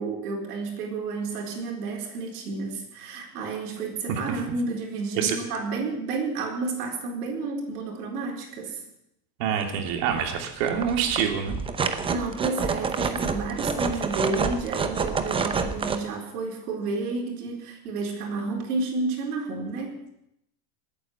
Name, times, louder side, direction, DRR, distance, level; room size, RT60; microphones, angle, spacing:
voice 1, 0.0-8.8 11.8-20.0, right 3 dB, 90° right, 1 dB, 4.4 m, -31 dB
voice 2, 9.4-11.6, right 7 dB, 60° right, 4 dB, 3.1 m, -26 dB
sound 1, 9.6-9.7 10.1-10.3 10.6-16.0, right 5 dB, 10° right, 0.7 m, -28 dB
19.0 x 9.2 x 7.1 m, 0.79 s
supercardioid pair, 150°, 45 cm